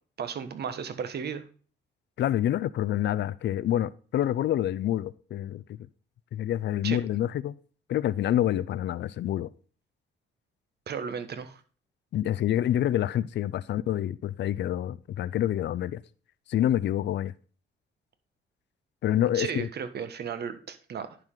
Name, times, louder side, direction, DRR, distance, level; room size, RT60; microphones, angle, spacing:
voice 1, 0.2-1.4 6.8-7.0 10.9-11.6 19.3-21.2, right 7 dB, 55° right, 1.3 m, -34 dB
voice 2, 2.2-5.8 6.3-7.6 7.9-9.5 12.1-16.0 16.5-17.3 19.0-19.7, left 12 dB, 60° left, 0.5 m, -27 dB
11.0 x 4.9 x 3.7 m
cardioid pair, 90°, 20 cm